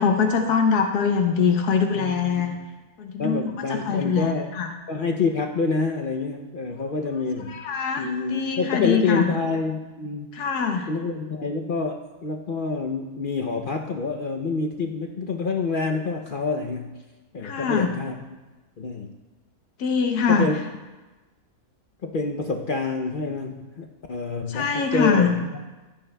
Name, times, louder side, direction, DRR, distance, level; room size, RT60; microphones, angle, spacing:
voice 1, 0.0-2.5 3.0-3.4 3.7-4.7 7.5-9.3 10.3-10.9 17.4-17.9 19.8-20.5 24.5-25.3, left 6 dB, 80° left, 4 dB, 1.4 m, -23 dB
voice 2, 1.9-2.6 3.2-4.5 4.9-7.6 8.0-10.4 10.9-17.0 17.3-18.2 18.8-19.1 20.3-20.5 22.0-25.5, left 4 dB, 60° left, 3 dB, 0.5 m, -27 dB
16.0 x 11.5 x 2.2 m, 1.2 s
omnidirectional pair, 1.6 m